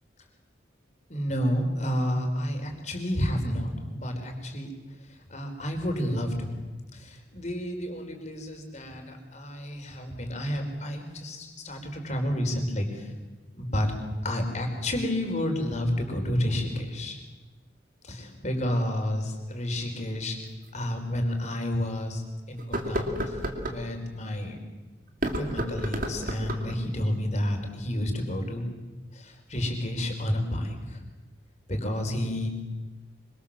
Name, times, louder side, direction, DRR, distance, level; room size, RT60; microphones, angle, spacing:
voice 1, 1.1-4.7 5.3-6.6 6.9-13.1 13.5-13.9 14.2-17.2 18.0-20.4 20.7-23.4 23.7-24.6 25.3-28.7 29.1-31.0 31.7-32.5, left 1 dB, 35° left, 4 dB, 4.3 m, -30 dB
sound 1, 20.6-20.7 21.3-21.4 22.6-23.8 25.1-26.8, equal, 45° right, 2.5 m, -31 dB
25.5 x 24.5 x 7.5 m, 1.2 s
head